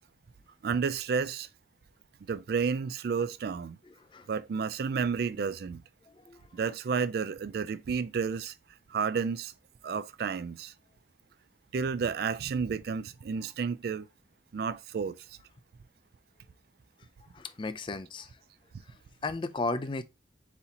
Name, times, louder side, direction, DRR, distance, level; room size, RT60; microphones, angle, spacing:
voice 1, 0.6-1.5 2.3-3.8 4.3-5.8 6.5-8.5 8.9-9.5 9.8-10.7 11.7-14.1 14.5-15.2, right 5 dB, 55° right, 0.3 m, -31 dB
voice 2, 3.8-4.3 6.1-6.4 17.3-18.4 18.8-20.0, left 3 dB, 25° left, 0.3 m, -36 dB
4.1 x 4.1 x 2.8 m
head